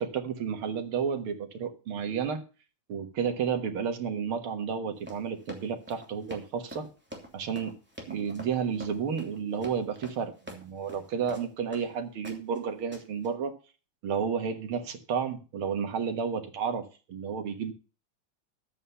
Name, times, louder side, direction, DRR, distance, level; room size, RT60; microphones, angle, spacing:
voice 1, 0.0-2.4 2.9-6.9 7.3-7.8 8.1-13.6 14.0-17.7, right 6 dB, 90° right, 2.3 m, -31 dB
Run, 5.0-11.9 12.2-12.6 12.9-13.3, equal, 5° right, 3.0 m, -46 dB
11.5 x 8.5 x 5.5 m
omnidirectional pair, 2.3 m